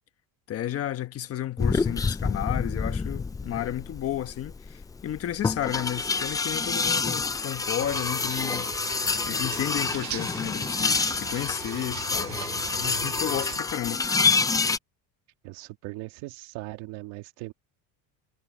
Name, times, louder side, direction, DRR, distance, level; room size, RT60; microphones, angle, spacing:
voice 1, 0.5-8.7 9.3-12.4 12.7-14.0, left 11 dB, 35° left, 1.2 m, -32 dB
sound 1, 1.6-14.8, left 4 dB, 10° left, 0.4 m, -28 dB
sound 2, 7.8-13.6, right 13 dB, 45° right, 1.4 m, -40 dB
voice 2, 15.4-17.5, right 21 dB, 90° right, 1.9 m, -39 dB
cardioid pair, 160°, 40 cm